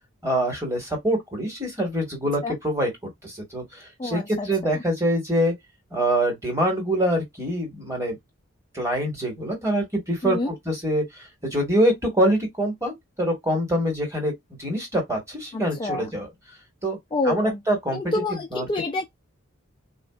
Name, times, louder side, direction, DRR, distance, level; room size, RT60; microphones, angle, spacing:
voice 1, 0.2-5.5 5.9-8.2 8.7-11.0 11.4-14.3 14.6-16.3 16.8-17.0 17.2-18.1 18.5-18.7, equal, 15° right, 1.4 m, -25 dB
voice 2, 4.0-4.8 10.2-10.5 15.5-16.1 17.1-17.6 17.9-19.1, left 2 dB, 20° left, 0.4 m, -28 dB
3.6 x 2.4 x 2.3 m
head